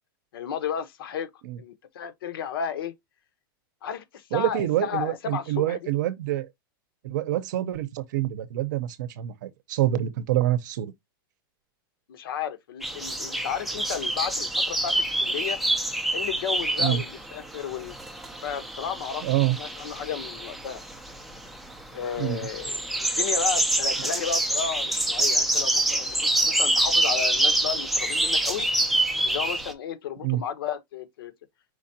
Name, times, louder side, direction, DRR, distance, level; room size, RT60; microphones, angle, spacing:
voice 1, 0.3-1.3 1.6-2.9 3.8-5.8 12.1-15.6 16.1-17.9 18.4-19.3 19.6-20.8 21.9-22.8 23.1-28.7 29.2-31.3, left 8 dB, 75° left, 1.1 m, -33 dB
voice 2, 4.3-6.5 7.0-10.9 16.8-17.0 19.2-19.6 22.2-22.4 30.2-30.4, right 14 dB, 55° right, 0.7 m, -26 dB
sound 1, 12.8-29.7, right 1 dB, ahead, 0.4 m, -26 dB
5.0 x 3.7 x 2.7 m
supercardioid pair, 180°, 12 cm